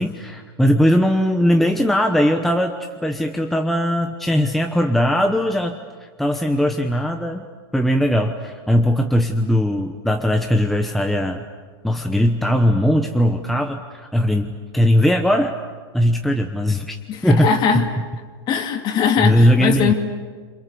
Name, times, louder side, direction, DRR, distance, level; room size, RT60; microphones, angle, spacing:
voice 1, 0.0-7.5 7.7-11.4 11.8-15.5 15.9-17.0 17.2-17.9 19.2-19.9, equal, ahead, 4 dB, 1.1 m, -19 dB
voice 2, 17.1-17.8 18.5-19.9, left 7 dB, 35° left, 6 dB, 2.6 m, -20 dB
29.0 x 27.5 x 7.0 m, 1.5 s
supercardioid pair, 150°, 13 cm